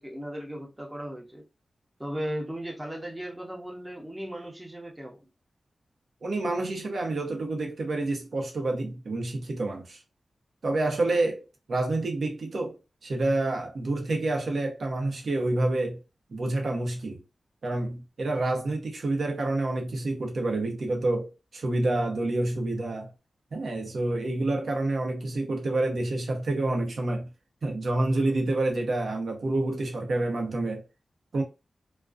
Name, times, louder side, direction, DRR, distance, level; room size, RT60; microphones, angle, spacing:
voice 1, 0.0-1.5 2.0-5.2, equal, 15° right, 1.0 m, -36 dB
voice 2, 6.2-10.0 10.6-16.0 16.3-17.2 17.6-23.1 23.5-27.3 27.6-30.8 31.3-31.4, right 2 dB, 75° right, 0.8 m, -28 dB
2.4 x 2.2 x 2.4 m
cardioid pair, 60°, 0 cm